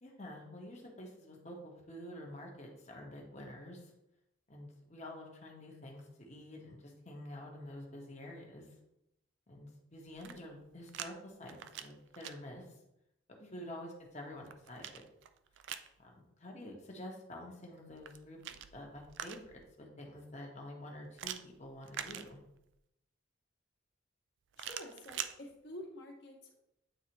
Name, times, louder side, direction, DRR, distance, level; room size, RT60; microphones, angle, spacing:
voice 1, 0.0-3.9 4.5-8.7 9.5-12.8 13.5-15.0 16.0-18.4 18.7-22.4, left 1 dB, 35° left, 0 dB, 1.2 m, -48 dB
sound 1, 10.0-11.1 11.4-12.3 14.1-15.9 17.9-19.7 21.2-22.8 24.5-25.3, right 10 dB, 60° right, 0.4 m, -45 dB
voice 2, 24.6-26.6, left 1 dB, 55° left, -1 dB, 1.5 m, -49 dB
9.0 x 4.0 x 3.0 m, 0.84 s
head